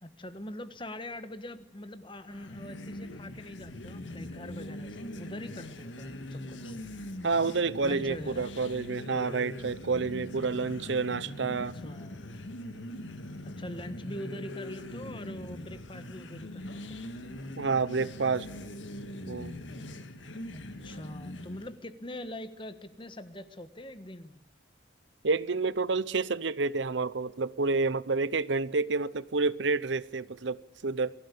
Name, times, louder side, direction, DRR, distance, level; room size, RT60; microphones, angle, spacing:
voice 1, 0.0-6.8 7.8-8.5 11.5-12.3 13.4-17.0 20.5-24.4, left 1 dB, 25° left, 1.3 m, -43 dB
sound 1, 2.3-21.8, left 1 dB, 80° left, 1.8 m, -42 dB
voice 2, 7.2-11.8 17.6-18.5 19.3-19.5 25.2-31.1, right 4 dB, 70° right, 0.8 m, -29 dB
23.0 x 15.5 x 8.4 m
head